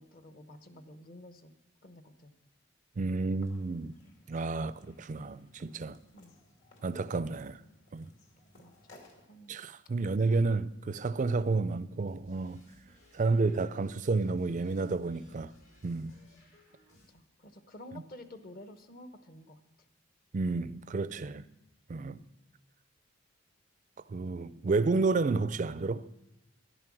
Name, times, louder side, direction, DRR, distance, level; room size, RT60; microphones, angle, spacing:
voice 1, 0.0-1.5 1.8-2.4 6.1-6.3 8.6-8.7 9.3-9.5 17.1-19.6 22.1-22.3, left 1 dB, 45° left, 0.9 m, -51 dB
voice 2, 3.0-3.9 4.3-6.0 6.8-7.6 7.9-8.1 9.5-12.6 13.1-15.5 15.8-16.1 17.9-18.0 20.3-21.4 21.9-22.2 24.1-26.1, right 3 dB, 35° right, 0.4 m, -30 dB
sound 1, 3.3-9.2, left 2 dB, 65° left, 2.6 m, -60 dB
sound 2, 12.1-17.1, left 1 dB, 85° left, 6.1 m, -61 dB
11.5 x 11.0 x 6.1 m
head